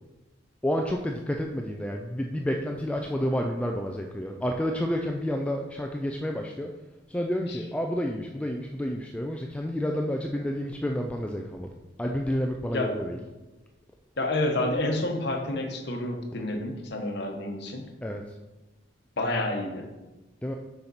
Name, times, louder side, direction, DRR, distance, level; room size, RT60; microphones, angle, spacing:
voice 1, 0.6-6.7 7.1-11.7 12.0-13.2 18.0-18.2 20.4-20.5, equal, 5° left, 2 dB, 0.3 m, -30 dB
voice 2, 14.2-17.8 19.2-19.8, left 1 dB, 55° left, 3 dB, 1.0 m, -29 dB
6.7 x 5.9 x 4.1 m, 1.1 s
head